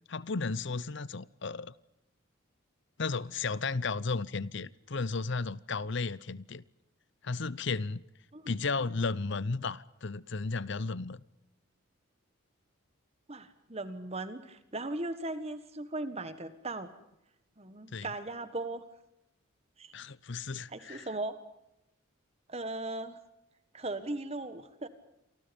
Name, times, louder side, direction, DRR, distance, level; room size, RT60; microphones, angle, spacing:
voice 1, 0.1-1.7 3.0-6.6 7.2-8.0 8.5-11.2 17.9-18.1 19.9-21.1, left 4 dB, 55° left, 0.8 m, -34 dB
voice 2, 13.3-16.9 17.6-18.8 19.8-19.9 20.7-21.4 22.5-23.2 23.7-24.9, right 2 dB, 30° right, 1.5 m, -38 dB
28.5 x 24.5 x 5.3 m
head